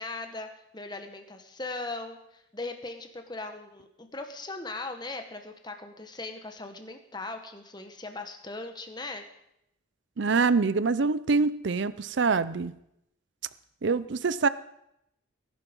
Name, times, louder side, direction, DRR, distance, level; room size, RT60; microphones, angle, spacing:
voice 1, 0.0-9.2, left 2 dB, 20° left, 6 dB, 1.5 m, -39 dB
voice 2, 10.2-12.7 13.8-14.5, right 4 dB, 65° right, 16 dB, 0.5 m, -25 dB
20.0 x 11.5 x 5.4 m, 0.80 s
head